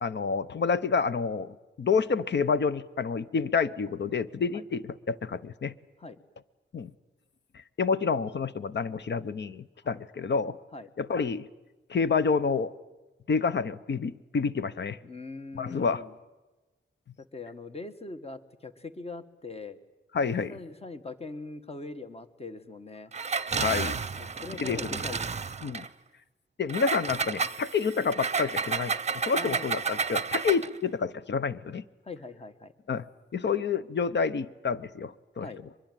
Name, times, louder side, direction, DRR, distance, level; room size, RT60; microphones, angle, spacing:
voice 1, 0.0-5.7 6.7-6.9 7.5-10.6 11.0-11.5 11.9-12.7 13.3-15.0 15.5-16.0 20.1-20.6 23.5-24.0 24.6-25.0 25.6-25.9 26.6-31.8 32.9-33.1 33.3-35.5, left 5 dB, 60° left, 14 dB, 0.9 m, -28 dB
voice 2, 15.0-16.1 17.3-19.8 20.3-23.1 24.1-25.2 29.4-29.7 32.0-32.7 35.4-35.6, left 3 dB, 30° left, 10 dB, 1.3 m, -42 dB
Engine, 23.1-25.9 26.7-30.8, right 5 dB, 35° right, 0.7 m, -31 dB
23.5 x 22.0 x 9.2 m, 1.1 s
wide cardioid pair, 150°, 20 cm